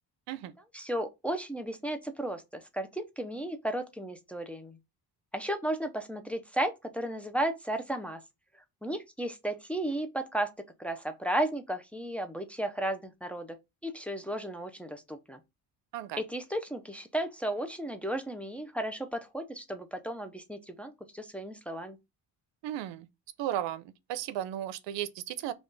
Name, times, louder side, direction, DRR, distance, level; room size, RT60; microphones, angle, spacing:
voice 1, 0.7-4.8 5.3-8.2 8.8-13.6 13.8-15.4 16.2-22.0, right 1 dB, 5° left, 0.5 m, -34 dB
voice 2, 22.6-23.1 23.4-25.5, right 12 dB, 85° right, 0.7 m, -35 dB
5.7 x 2.4 x 3.9 m
cardioid pair, 125°, 42 cm